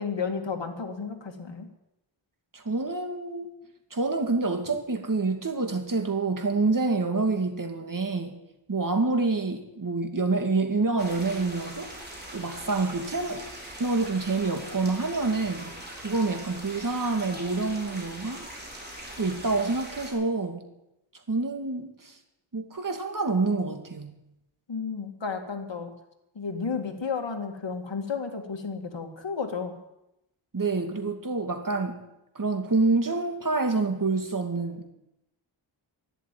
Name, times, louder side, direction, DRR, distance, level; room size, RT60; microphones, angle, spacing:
voice 1, 0.0-1.7 24.7-25.9 26.3-29.8, left 5 dB, 60° left, 4 dB, 2.4 m, -32 dB
voice 2, 2.5-3.5 3.9-8.4 8.7-11.9 12.3-13.5 13.8-15.7 16.0-18.5 19.2-20.7 21.3-22.1 22.5-24.1 30.5-32.0 32.3-34.9, right 3 dB, 40° right, 5 dB, 2.3 m, -27 dB
sound 1, 11.0-20.1, right 1 dB, 20° right, 4.8 m, -41 dB
12.0 x 11.0 x 9.3 m, 0.88 s
wide cardioid pair, 75°, 50 cm